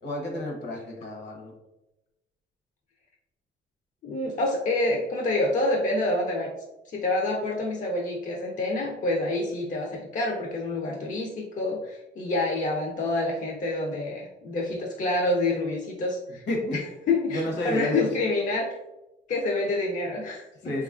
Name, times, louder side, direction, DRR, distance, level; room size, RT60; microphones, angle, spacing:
voice 1, 0.0-1.5 16.5-16.8 17.3-18.1 20.6-20.8, left 1 dB, 60° left, 1 dB, 0.8 m, -30 dB
voice 2, 4.0-6.5 6.9-16.4 17.1-18.7 19.3-20.5, left 2 dB, 40° left, -1 dB, 0.5 m, -27 dB
2.9 x 2.4 x 2.4 m, 0.96 s
cardioid pair, 90°, 20 cm